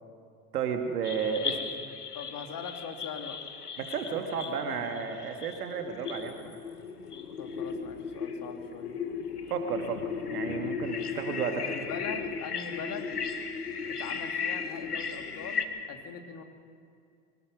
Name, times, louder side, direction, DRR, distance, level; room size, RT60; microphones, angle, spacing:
voice 1, 0.5-1.8 3.8-6.6 9.5-10.0 10.3-11.7, right 6 dB, 80° right, 5 dB, 2.1 m, -32 dB
sound 1, 1.0-15.7, left 6 dB, 90° left, 1.3 m, -36 dB
voice 2, 2.1-3.4 7.4-9.0 11.6-13.1 13.9-16.4, left 6 dB, 45° left, 4 dB, 2.8 m, -41 dB
24.5 x 19.0 x 6.1 m, 2.4 s
figure-of-eight pair, 65°, 45 cm